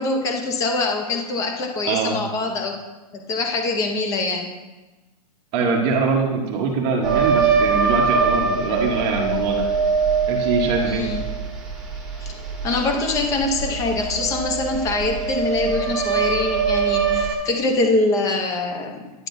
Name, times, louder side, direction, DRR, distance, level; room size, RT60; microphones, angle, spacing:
voice 1, 0.0-2.8 3.1-4.5 10.8-11.2 12.2-12.3 12.6-19.0, left 2 dB, 15° left, 3 dB, 0.8 m, -24 dB
voice 2, 1.9-2.2 5.5-9.7 10.3-11.1, right 4 dB, 30° right, 0 dB, 1.1 m, -23 dB
sound 1, 7.0-17.3, right 5 dB, ahead, 2.0 m, -23 dB
10.5 x 9.6 x 2.7 m, 1.2 s
supercardioid pair, 165°, 20 cm